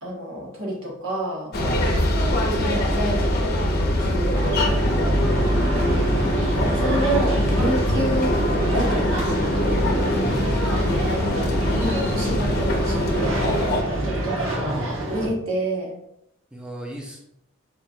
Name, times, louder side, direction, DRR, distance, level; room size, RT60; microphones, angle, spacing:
voice 1, 0.0-1.6 2.3-4.6 5.4-8.4 8.7-10.0 11.1-13.6 14.0-16.0, right 1 dB, 85° right, -4 dB, 1.3 m, -29 dB
sound 1, 1.5-13.8, left 1 dB, 50° left, 0.6 m, -22 dB
sound 2, 4.3-15.3, right 1 dB, 70° right, 1.0 m, -28 dB
voice 2, 10.2-10.9 16.5-17.2, right 1 dB, 5° right, -2 dB, 0.4 m, -36 dB
4.3 x 2.4 x 2.7 m, 0.77 s
head